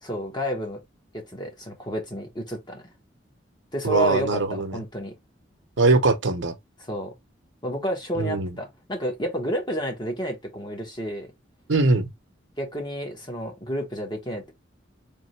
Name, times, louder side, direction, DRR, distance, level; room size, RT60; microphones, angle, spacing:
voice 1, 0.0-0.8 1.1-2.8 3.7-5.1 6.9-7.1 7.6-11.3 12.6-14.5, equal, 25° left, 1.4 m, -30 dB
voice 2, 3.8-4.8 5.8-6.5 8.2-8.5 11.7-12.1, right 3 dB, 70° right, 1.0 m, -21 dB
3.7 x 3.4 x 3.2 m
head